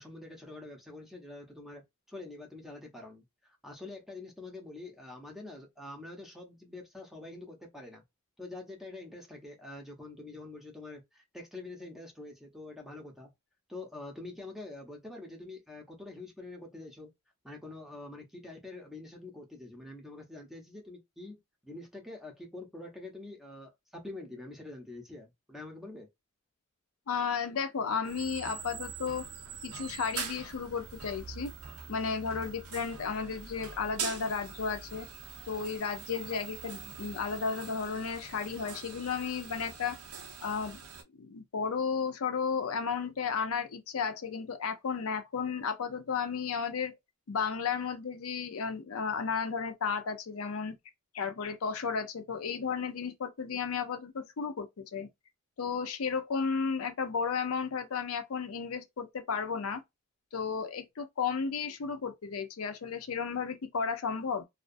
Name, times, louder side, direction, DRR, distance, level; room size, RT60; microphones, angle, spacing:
voice 1, 0.0-1.8 2.1-8.0 8.4-13.3 13.7-17.1 17.4-26.1, left 2 dB, ahead, 0.6 m, -46 dB
voice 2, 27.1-29.2 29.6-31.5 31.9-35.1 35.5-40.0 40.4-40.8 41.1-46.9 47.3-50.7 51.1-55.1 55.6-59.8 60.3-64.4, left 5 dB, 70° left, 0.5 m, -33 dB
sound 1, 28.0-41.0, right 6 dB, 80° right, 0.6 m, -43 dB
2.4 x 2.3 x 2.5 m
head